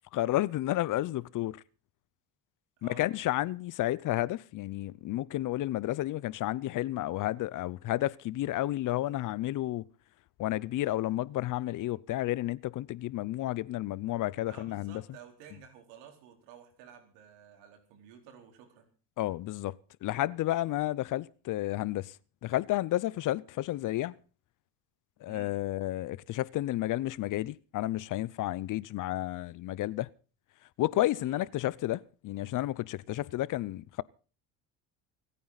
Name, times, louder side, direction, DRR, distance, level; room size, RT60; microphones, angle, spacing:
voice 1, 0.1-1.6 2.8-9.8 10.4-15.0 19.2-19.8 20.0-22.1 22.4-24.1 25.2-30.1 30.8-34.0, left 15 dB, 55° left, 0.7 m, -31 dB
voice 2, 2.8-3.1 14.4-18.9 25.3-25.5 31.2-31.4, right 8 dB, 90° right, 4.3 m, -53 dB
27.5 x 9.4 x 4.0 m
cardioid pair, 110°, 38 cm